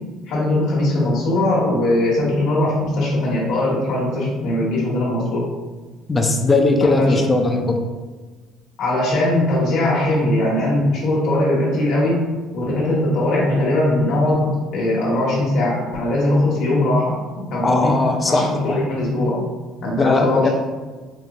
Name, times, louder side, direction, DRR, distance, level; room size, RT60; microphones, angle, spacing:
voice 1, 0.3-5.5 6.8-7.2 8.8-12.2 12.5-17.9 18.3-19.4 19.8-20.5, left 1 dB, 50° left, -5 dB, 1.1 m, -20 dB
voice 2, 6.1-7.8 17.6-18.8 20.0-20.5, left 3 dB, 15° left, 4 dB, 0.3 m, -18 dB
4.3 x 2.7 x 2.6 m, 1.3 s
cardioid pair, 165°, 0 cm